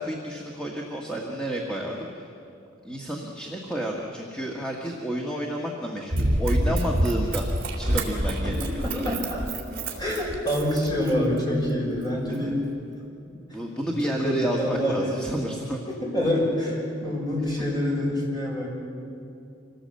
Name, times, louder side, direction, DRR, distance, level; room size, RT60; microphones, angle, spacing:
voice 1, 0.0-2.3 2.8-7.5 7.8-9.0 12.2-12.5 13.5-15.8, equal, 5° left, -2 dB, 1.6 m, -30 dB
Run, 6.1-11.4 12.0-12.1, right 1 dB, 50° right, 3.3 m, -27 dB
voice 2, 8.8-9.4 10.0-12.6 13.8-15.2 15.9-18.7, left 1 dB, 20° left, -3 dB, 6.0 m, -26 dB
26.5 x 18.0 x 7.8 m, 2.6 s
head